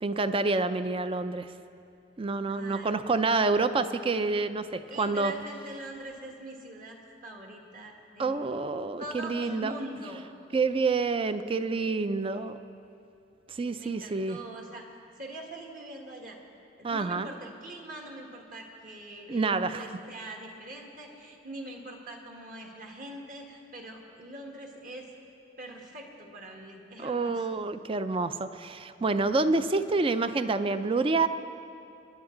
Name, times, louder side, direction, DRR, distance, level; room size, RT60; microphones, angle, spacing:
voice 1, 0.0-1.5 2.2-5.3 8.2-9.7 10.5-12.6 13.5-14.4 16.8-17.3 19.3-19.9 27.0-31.3, right 3 dB, 30° right, 11 dB, 0.4 m, -28 dB
voice 2, 2.5-3.0 4.9-8.4 9.0-10.2 13.8-14.9 15.2-16.4 16.8-25.1 25.6-27.5, right 1 dB, 50° right, 1 dB, 1.7 m, -43 dB
23.0 x 10.5 x 3.9 m, 2.6 s
head